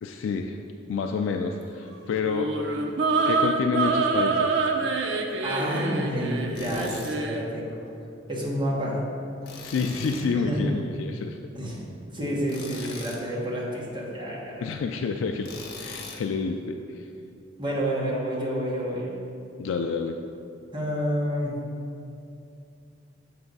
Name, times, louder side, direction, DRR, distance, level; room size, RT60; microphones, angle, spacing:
voice 1, 0.0-0.6 0.9-2.8 3.3-4.6 9.6-11.4 12.8-12.9 14.6-17.1 19.6-20.2, left 5 dB, 75° left, 4 dB, 0.3 m, -29 dB
sound 1, 2.2-7.5, right 3 dB, 65° right, 0.5 m, -26 dB
voice 2, 5.4-7.8 8.3-9.0 10.3-10.6 11.5-14.7 17.6-19.1 20.7-21.6, equal, 25° right, -5 dB, 1.2 m, -29 dB
Tools, 6.6-7.1 9.5-10.3 12.5-13.2 15.4-16.3, left 3 dB, 55° left, 0.7 m, -40 dB
7.1 x 3.4 x 5.3 m, 2.6 s
head